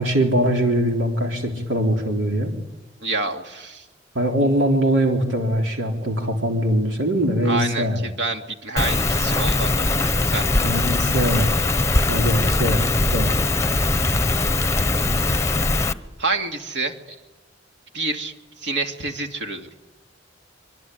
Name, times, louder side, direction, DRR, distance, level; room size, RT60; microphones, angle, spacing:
voice 1, 0.0-2.5 4.1-8.0 10.6-11.6 12.1-12.9 13.1-13.4, equal, 85° right, 1 dB, 3.8 m, -22 dB
voice 2, 3.0-3.9 7.4-10.5 15.5-17.0 17.9-19.7, right 3 dB, 65° right, 4 dB, 2.6 m, -28 dB
Rain, 8.8-15.9, left 2 dB, 15° left, 0.9 m, -21 dB
25.5 x 23.5 x 9.4 m, 1.0 s
head